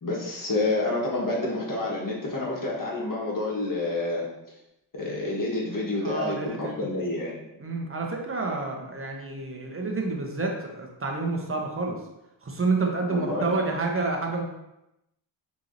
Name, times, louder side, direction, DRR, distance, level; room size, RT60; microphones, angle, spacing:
voice 1, 0.0-4.2 4.9-7.4 13.1-13.6, left 2 dB, 45° left, -4 dB, 1.4 m, -28 dB
voice 2, 6.0-6.9 7.6-12.0 12.4-14.4, right 3 dB, 30° right, 1 dB, 0.9 m, -29 dB
4.6 x 3.1 x 2.6 m, 0.90 s
cardioid pair, 60°, 46 cm